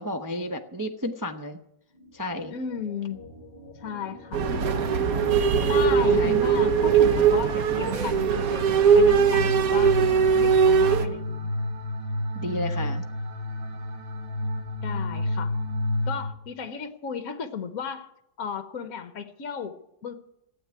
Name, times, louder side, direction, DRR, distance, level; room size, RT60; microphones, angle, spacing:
voice 1, 0.0-1.6 2.1-2.5 6.1-6.3 12.3-13.0, left 1 dB, 25° right, 4 dB, 0.4 m, -32 dB
sound 1, 1.9-9.3, left 1 dB, 40° left, 1.8 m, -44 dB
voice 2, 2.5-3.2 3.8-5.2 5.6-10.0 10.4-11.5 12.5-12.9 14.8-15.5 16.1-18.1 18.4-20.2, left 6 dB, 60° left, 9 dB, 1.3 m, -35 dB
sound 2, 4.3-11.1, right 6 dB, 60° right, 1.3 m, -20 dB
sound 3, 8.9-16.3, left 1 dB, 90° right, 2.2 m, -30 dB
15.5 x 8.3 x 9.5 m, 0.83 s
omnidirectional pair, 1.8 m